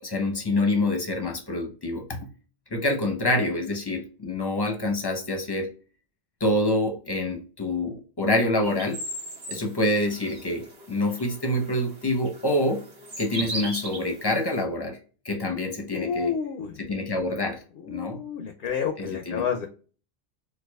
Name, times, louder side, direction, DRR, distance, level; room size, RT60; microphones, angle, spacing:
voice 1, 0.0-2.3 2.7-5.7 6.4-9.0 9.5-12.8 13.2-15.0 15.2-16.3 16.8-18.2 19.0-19.5, left 1 dB, 25° left, 2 dB, 0.7 m, -26 dB
sound 1, 8.6-14.6, right 1 dB, 70° right, 1.5 m, -39 dB
voice 2, 15.9-16.8 17.8-19.7, left 6 dB, 65° left, 5 dB, 0.7 m, -30 dB
4.7 x 2.3 x 2.2 m, 0.37 s
omnidirectional pair, 1.2 m